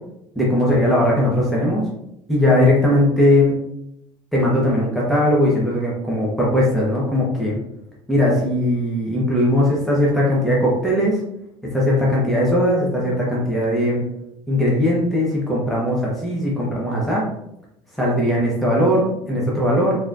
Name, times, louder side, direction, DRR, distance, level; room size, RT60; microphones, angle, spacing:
voice 1, 0.3-1.9 2.3-3.6 4.3-7.6 8.1-11.2 11.7-14.0 14.5-17.2 18.0-20.0, left 1 dB, ahead, -5 dB, 1.2 m, -19 dB
3.5 x 3.2 x 2.5 m, 0.80 s
hypercardioid pair, 80°, 16 cm